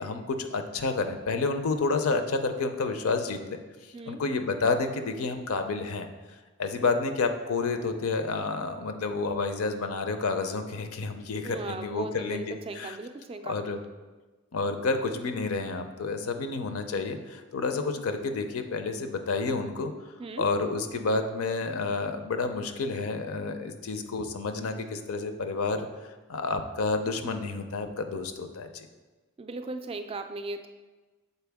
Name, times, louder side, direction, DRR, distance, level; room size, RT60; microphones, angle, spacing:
voice 1, 0.0-3.4 3.8-6.1 6.6-13.0 13.4-13.8 14.5-19.9 20.4-25.9 26.3-28.9, left 3 dB, 80° left, 7 dB, 0.5 m, -30 dB
voice 2, 11.4-13.9 18.0-18.1 20.2-20.5 29.4-30.7, right 3 dB, 25° right, 7 dB, 0.3 m, -38 dB
6.8 x 4.4 x 3.4 m, 1.3 s
head